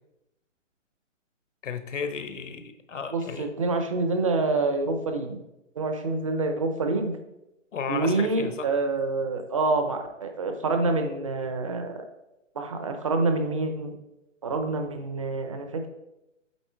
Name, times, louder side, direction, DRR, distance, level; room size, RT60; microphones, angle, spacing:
voice 1, 1.6-3.5 7.7-8.7, left 6 dB, 70° left, 9 dB, 1.0 m, -34 dB
voice 2, 3.1-5.4 5.8-7.1 7.9-12.0 12.6-13.9 14.4-15.9, right 3 dB, 25° right, 6 dB, 0.6 m, -27 dB
8.3 x 3.6 x 4.5 m, 0.91 s
hypercardioid pair, 160°, 38 cm